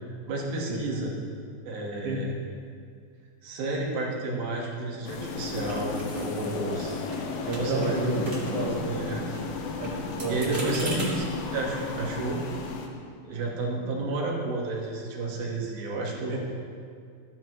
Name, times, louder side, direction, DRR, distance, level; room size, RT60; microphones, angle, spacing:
voice 1, 0.2-1.1 1.6-2.4 3.4-7.0 7.4-8.1 8.6-9.2 10.3-11.2 11.5-12.4 13.2-16.4, right 2 dB, 80° right, -2 dB, 3.3 m, -31 dB
sound 1, 5.1-12.9, left 4 dB, 85° left, 2.8 m, -34 dB
sound 2, 5.6-6.8 7.1-7.2 7.5-8.7 9.0-11.1, right 1 dB, 30° right, 2.2 m, -40 dB
voice 2, 7.4-8.8 9.8-11.0 16.3-16.4, right 2 dB, 60° right, -2 dB, 1.8 m, -30 dB
15.0 x 9.4 x 3.0 m, 2.2 s
omnidirectional pair, 4.3 m